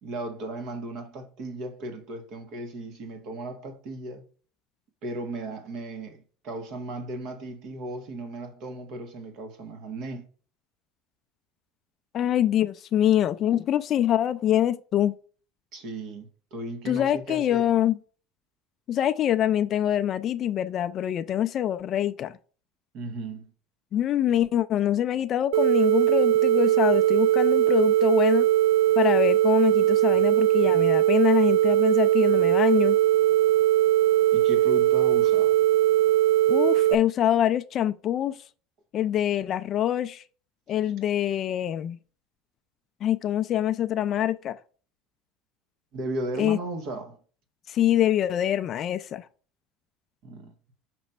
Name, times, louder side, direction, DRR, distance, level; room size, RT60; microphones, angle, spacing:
voice 1, 0.0-4.2 5.0-10.2 15.7-17.7 22.9-23.5 34.3-35.6 45.9-47.2 50.2-50.5, right 2 dB, 50° right, 1.5 m, -36 dB
voice 2, 12.1-15.1 16.9-18.0 18.9-22.3 23.9-28.5 29.0-33.0 36.5-38.4 38.9-40.2 40.7-42.0 43.0-44.6 46.4-46.6 47.7-49.2, left 11 dB, 35° left, 0.3 m, -24 dB
sound 1, 25.5-36.9, right 13 dB, 75° right, 0.3 m, -20 dB
6.0 x 3.1 x 5.3 m
cardioid pair, 160°, 0 cm